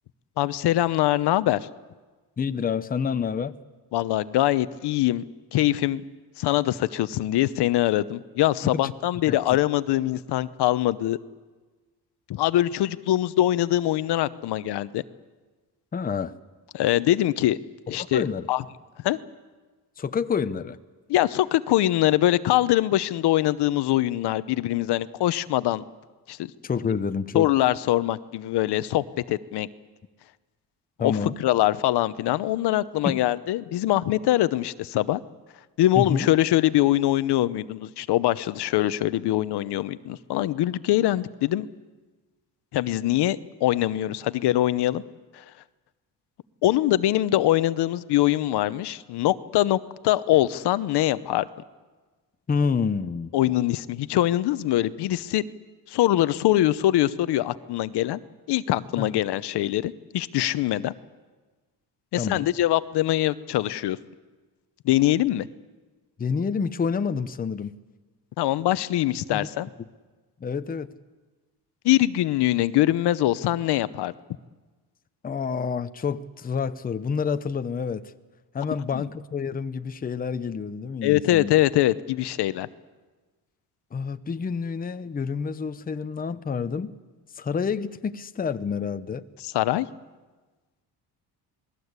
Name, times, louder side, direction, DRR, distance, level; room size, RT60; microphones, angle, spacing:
voice 1, 0.4-1.6 3.9-5.2 5.5-6.0 6.4-11.2 12.3-15.0 16.7-17.6 17.9-18.6 19.0-19.2 21.1-25.8 26.3-26.4 27.3-29.7 31.0-35.2 35.8-41.7 42.7-45.0 46.6-49.8 50.0-51.5 53.3-55.4 55.9-58.2 58.5-60.9 62.1-64.0 64.8-65.5 68.4-69.7 71.8-74.1 78.9-79.0 81.0-82.7 89.4-89.9, left 14 dB, 70° left, 15 dB, 0.9 m, -23 dB
voice 2, 2.4-3.6 8.6-8.8 9.3-9.4 15.9-16.4 17.9-18.5 20.0-20.8 26.6-27.5 31.0-31.3 33.0-33.2 36.0-36.3 52.5-53.3 59.0-59.1 62.2-62.5 66.2-67.7 69.3-69.5 70.4-70.9 75.2-78.1 78.5-81.6 83.9-87.0 87.4-89.2, left 6 dB, 20° left, 11 dB, 0.8 m, -28 dB
27.5 x 20.0 x 8.2 m, 1.3 s
cardioid pair, 140°, 41 cm